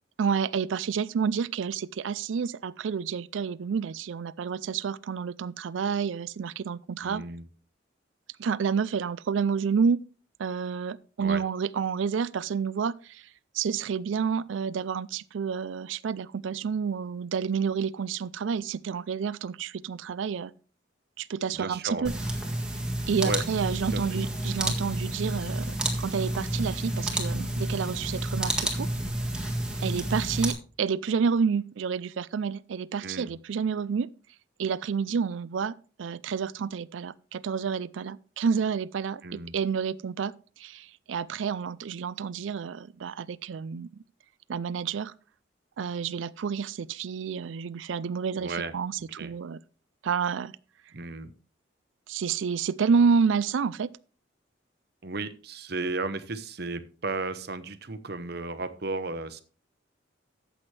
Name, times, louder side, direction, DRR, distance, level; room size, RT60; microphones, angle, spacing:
voice 1, 0.2-7.2 8.4-10.0 10.4-13.2 13.5-20.5 21.2-22.1 23.1-28.9 29.8-34.1 34.6-43.9 44.5-45.1 45.8-49.6 50.0-50.5 52.1-53.9, right 6 dB, 80° right, 0.4 m, -29 dB
voice 2, 7.0-7.4 11.2-11.4 21.5-22.1 23.2-23.4 23.9-24.2 33.0-33.3 39.2-39.5 48.4-48.7 49.2-49.3 50.9-51.3 55.0-59.4, right 3 dB, 55° right, 0.9 m, -34 dB
sound 1, 22.0-30.5, right 1 dB, 5° right, 1.7 m, -30 dB
13.0 x 7.9 x 3.2 m
head